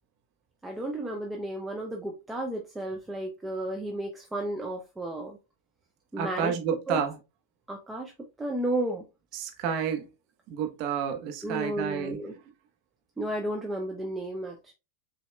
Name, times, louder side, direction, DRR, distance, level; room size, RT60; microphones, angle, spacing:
voice 1, 0.6-5.4 6.1-6.5 6.9-7.0 7.7-8.1 8.4-9.0 11.4-12.3 13.2-14.7, right 1 dB, 10° right, 0.7 m, -33 dB
voice 2, 6.2-7.1 9.3-10.1 10.5-12.3, right 7 dB, 45° right, 1.1 m, -30 dB
7.0 x 2.8 x 2.2 m
hypercardioid pair, 100°, 0 cm